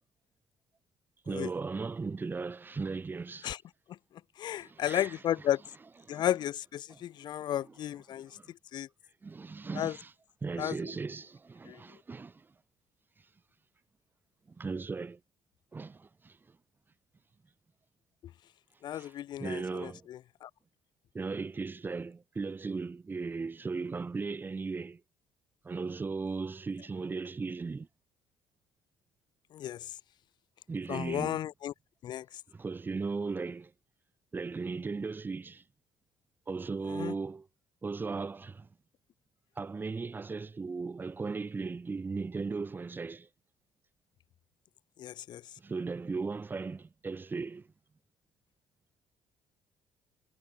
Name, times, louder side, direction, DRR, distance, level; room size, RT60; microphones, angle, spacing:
voice 1, 1.3-3.5 4.6-5.1 6.1-6.3 6.9-7.0 7.4-7.5 8.1-8.5 9.2-10.1 10.4-12.5 14.5-15.2 15.7-16.6 18.9-19.1 19.4-20.1 21.1-25.0 25.6-27.9 30.7-31.4 32.5-33.7 34.3-35.6 36.5-37.5 37.8-38.7 39.6-43.3 45.6-47.7, right 4 dB, 25° right, 4.1 m, -37 dB
voice 2, 4.4-5.6 6.1-8.4 8.7-8.9 9.7-10.0 10.6-10.9 11.6-11.8 18.8-20.5 29.5-30.0 30.9-31.7 32.0-32.4 36.9-37.1 45.0-45.4, left 11 dB, 65° left, 3.9 m, -34 dB
cardioid pair, 110°, 8 cm